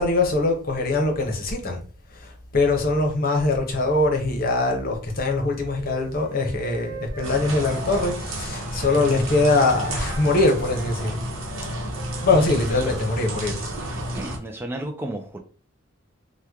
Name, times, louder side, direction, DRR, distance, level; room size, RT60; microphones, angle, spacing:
voice 1, 0.0-1.8 2.1-11.2 12.2-13.6, left 2 dB, 45° left, 0.9 m, -22 dB
Wind instrument woodwind instrument, 5.6-9.2 9.5-13.3, right 2 dB, 35° right, 1.3 m, -42 dB
sound 1, 7.2-14.4, right 1 dB, 75° right, 0.8 m, -31 dB
voice 2, 12.6-12.9 14.1-15.4, right 1 dB, 10° right, 0.3 m, -32 dB
3.0 x 2.2 x 3.5 m
head